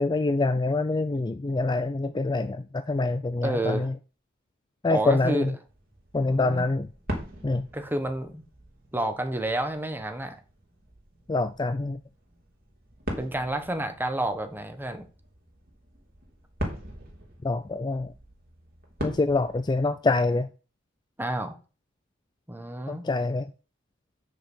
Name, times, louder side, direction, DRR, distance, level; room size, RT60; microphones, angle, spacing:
voice 1, 0.0-3.9 4.8-5.6 6.1-6.9 7.4-7.7 11.3-12.0 17.4-18.1 19.0-20.5 22.9-23.5, left 3 dB, 20° left, 0.4 m, -25 dB
voice 2, 3.4-3.9 4.9-5.5 6.3-6.7 7.7-8.4 8.9-10.4 13.2-15.1 21.2-21.6 22.5-23.0, right 1 dB, 10° right, 1.2 m, -29 dB
sound 1, 5.7-20.0, equal, 50° right, 3.4 m, -41 dB
7.7 x 6.5 x 6.2 m
head